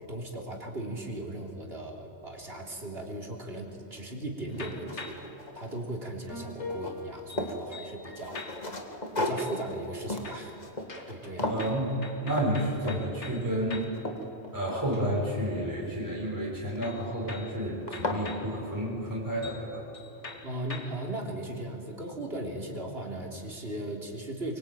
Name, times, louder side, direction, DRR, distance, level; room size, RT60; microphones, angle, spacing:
voice 1, 0.0-5.2 5.5-8.4 9.2-10.5 11.1-11.5 20.4-24.6, right 1 dB, 60° right, 0 dB, 3.8 m, -37 dB
sound 1, 4.0-4.1 4.5-6.0 6.3-7.6 8.1-11.1 11.4-11.7 12.3-12.5 12.8-13.2 13.6-15.2 16.7-17.1 17.5-17.6 17.9-18.3, left 1 dB, 35° left, 2.4 m, -35 dB
sound 2, 4.5-5.4 6.3-8.9 9.4-10.0 10.2-14.1 14.4-15.4 16.8-18.5 19.1-19.2 19.4-19.7 19.9-21.1, left 3 dB, 80° left, 2.4 m, -44 dB
voice 2, 11.4-11.9 12.2-13.8 14.5-19.8, right 1 dB, 15° right, -5 dB, 6.3 m, -31 dB
24.5 x 23.5 x 9.2 m, 2.9 s
omnidirectional pair, 1.2 m